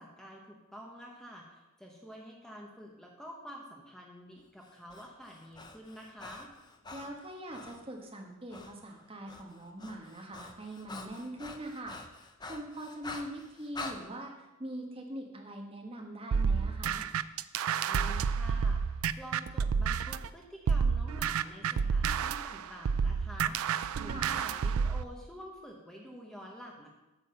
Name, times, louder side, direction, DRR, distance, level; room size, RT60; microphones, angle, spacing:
voice 1, 0.0-6.5 17.9-18.8 19.2-26.9, equal, ahead, -1 dB, 1.0 m, -48 dB
Breathing, 4.6-7.8 8.5-8.7 9.0-14.0, left 3 dB, 20° left, 0.6 m, -46 dB
voice 2, 6.9-12.0 12.5-17.0 24.1-24.3, right 1 dB, 25° right, 1 dB, 1.2 m, -42 dB
sound 1, 16.3-20.3 20.7-25.0, right 6 dB, 75° right, 0.4 m, -30 dB
8.8 x 7.1 x 5.6 m, 1.0 s
head